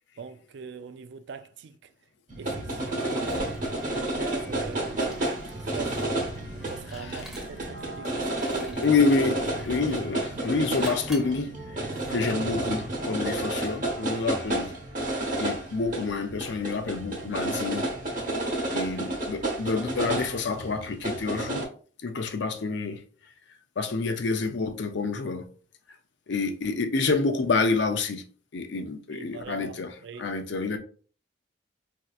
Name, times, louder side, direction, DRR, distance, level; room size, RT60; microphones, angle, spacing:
voice 1, 0.2-1.9 2.4-3.4 3.9-6.0 6.5-8.9 18.8-19.1 29.1-30.3, right 5 dB, 65° right, 0.4 m, -42 dB
sound 1, 2.3-21.7, right 1 dB, 45° right, 1.0 m, -31 dB
sound 2, 2.4-14.6, equal, 40° left, 1.0 m, -47 dB
Liquid, 2.8-7.8 8.3-9.0 9.6-10.1 10.8-11.4, left 1 dB, 5° right, 0.8 m, -46 dB
voice 2, 6.9-7.2 8.6-11.6 12.1-14.7 15.4-17.9 18.7-21.7 22.0-23.0 23.8-25.5 26.3-28.2 28.5-30.8, left 4 dB, 65° left, 0.5 m, -28 dB
4.3 x 2.7 x 2.4 m
head